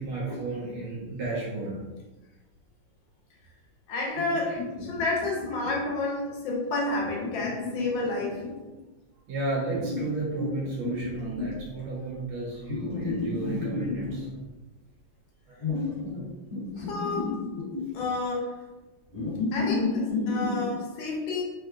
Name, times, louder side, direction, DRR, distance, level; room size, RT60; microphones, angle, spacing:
voice 1, 0.0-1.9 4.5-4.6 9.3-14.5 15.5-15.7 16.1-16.4 16.7-16.9, right 2 dB, 70° right, -4 dB, 1.1 m, -33 dB
voice 2, 3.9-8.4 16.8-17.3 17.9-18.6 19.1-21.4, left 2 dB, 75° left, -1 dB, 1.3 m, -30 dB
sound 1, 4.1-5.9 7.0-8.7 9.7-11.7 12.7-14.2 15.6-16.2 16.5-18.1 19.1-20.7, left 3 dB, 40° left, 1.1 m, -31 dB
3.6 x 2.1 x 2.4 m, 1.1 s
omnidirectional pair, 2.2 m